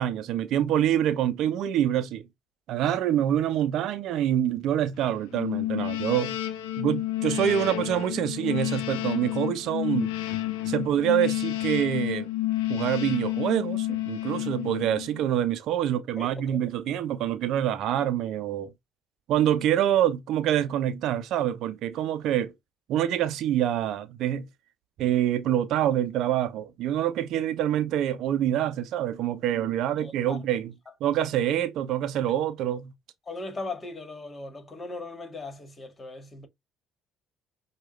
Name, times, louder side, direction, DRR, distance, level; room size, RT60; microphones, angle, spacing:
voice 1, 0.0-2.2 2.7-6.4 6.8-10.1 10.7-12.3 12.7-18.7 19.3-22.5 22.9-24.5 25.0-30.7 31.0-32.9, right 11 dB, 65° right, 0.6 m, -26 dB
sound 1, 5.3-15.2, left 15 dB, 80° left, 0.7 m, -30 dB
voice 2, 16.2-16.6 30.0-30.4 30.9-31.0 33.3-36.5, left 3 dB, 30° left, 1.8 m, -38 dB
6.1 x 2.4 x 3.1 m
hypercardioid pair, 55°, 0 cm